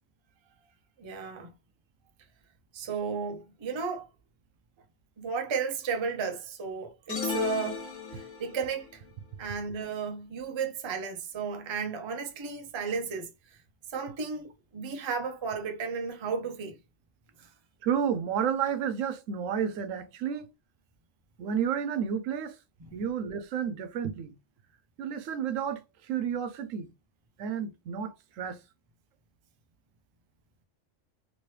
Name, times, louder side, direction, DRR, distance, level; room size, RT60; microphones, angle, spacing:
voice 1, 1.0-1.5 2.7-4.1 5.2-7.8 8.1-9.0 9.4-13.3 13.9-16.8 22.8-23.0, right 5 dB, 40° right, 0.4 m, -34 dB
sound 1, 7.1-8.6, left 6 dB, 80° left, 1.3 m, -33 dB
voice 2, 17.8-20.5 21.4-22.6 22.9-24.3 25.0-26.9 27.4-28.6, right 8 dB, 90° right, 1.0 m, -31 dB
3.0 x 2.9 x 3.1 m
omnidirectional pair, 1.3 m